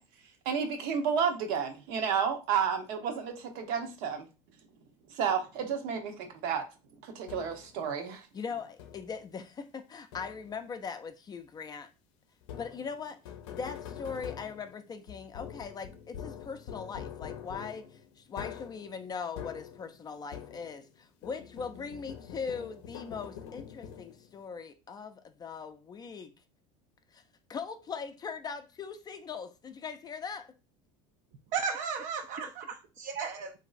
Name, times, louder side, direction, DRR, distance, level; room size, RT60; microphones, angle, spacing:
voice 1, 0.4-4.3 5.2-6.6 7.1-8.2, right 7 dB, 70° right, 0.9 m, -31 dB
sound 1, 7.3-7.8 8.8-9.3 10.1-10.7 12.4-20.9 21.2-24.4, left 9 dB, 85° left, 0.5 m, -45 dB
voice 2, 8.3-11.9 12.6-13.2 13.5-17.9 18.2-26.3 27.1-27.2 27.5-30.5, left 5 dB, 25° left, 0.4 m, -40 dB
voice 3, 31.5-33.5, right 6 dB, 55° right, 0.4 m, -34 dB
3.0 x 2.6 x 2.4 m
supercardioid pair, 110°, 16 cm